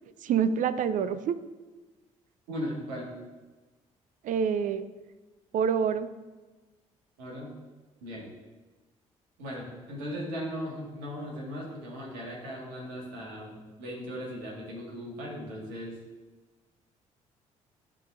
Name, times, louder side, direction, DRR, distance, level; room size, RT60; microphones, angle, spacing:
voice 1, 0.2-1.4 4.2-4.9 5.5-6.1, right 7 dB, 50° right, 13 dB, 0.4 m, -26 dB
voice 2, 2.5-3.1 7.2-7.5 8.0-8.3 9.4-16.0, equal, 75° right, -3 dB, 1.7 m, -38 dB
11.5 x 3.8 x 2.5 m, 1.2 s
hypercardioid pair, 50°, 17 cm